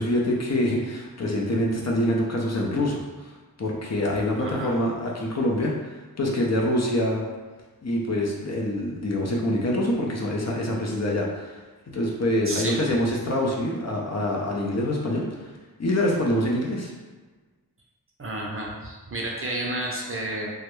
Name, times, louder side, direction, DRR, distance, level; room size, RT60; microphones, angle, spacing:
voice 1, 0.0-3.3 3.6-7.2 7.8-11.6 11.9-15.5 15.8-16.9, left 1 dB, 45° left, -2 dB, 0.5 m, -25 dB
voice 2, 4.3-4.8 12.5-12.8 18.2-20.5, right 1 dB, 35° right, -2 dB, 0.5 m, -31 dB
2.2 x 2.0 x 3.0 m, 1.3 s
wide cardioid pair, 45°, 37 cm